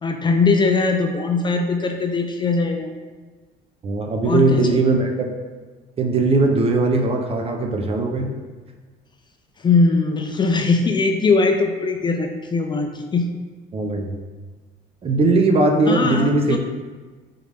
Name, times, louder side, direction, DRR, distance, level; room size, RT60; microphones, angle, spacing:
voice 1, 0.0-2.9 4.2-4.9 9.6-13.3 15.9-16.6, left 3 dB, 25° left, 4 dB, 0.4 m, -20 dB
voice 2, 3.8-5.3 6.0-8.4 13.7-14.1 15.0-16.6, right 2 dB, 35° right, 3 dB, 0.5 m, -19 dB
3.8 x 3.4 x 3.3 m, 1.4 s
cardioid pair, 110°, 17 cm